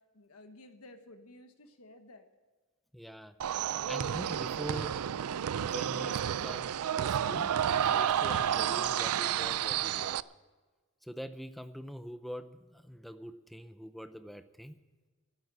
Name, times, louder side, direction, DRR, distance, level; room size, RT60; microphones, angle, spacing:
voice 1, 0.0-2.3, left 1 dB, 80° left, 7 dB, 1.3 m, -54 dB
voice 2, 2.9-3.3 3.9-4.9 5.5-7.5 7.9-10.2 11.0-14.8, equal, ahead, 10 dB, 0.6 m, -44 dB
sound 1, 3.4-10.2, right 9 dB, 80° right, 0.4 m, -31 dB
12.0 x 11.0 x 8.2 m, 1.4 s
head